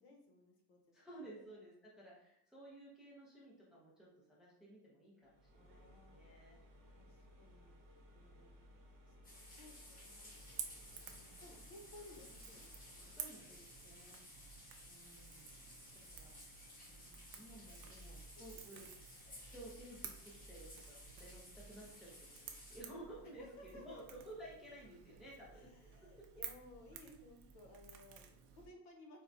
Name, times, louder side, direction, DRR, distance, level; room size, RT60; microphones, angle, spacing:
voice 1, 0.0-0.8 1.2-1.5 5.5-6.4 7.0-7.7 8.1-8.7 9.1-10.3 11.0-14.1 18.3-18.6 19.3-19.5 23.2-24.0 25.5-29.2, left 2 dB, 70° left, 1 dB, 1.0 m, -60 dB
voice 2, 0.9-6.9 10.9-11.4 13.1-14.4 14.9-16.4 16.9-18.8 19.1-20.8 21.2-25.7, right 1 dB, ahead, -6 dB, 0.4 m, -56 dB
sound 1, 5.2-13.3, left 1 dB, 50° right, 0.8 m, -61 dB
sound 2, 9.2-22.8, left 1 dB, 20° left, 0.8 m, -57 dB
Crackle / Crack, 10.3-28.7, right 7 dB, 80° right, 0.6 m, -54 dB
4.5 x 2.1 x 2.5 m, 0.76 s
cardioid pair, 165°, 44 cm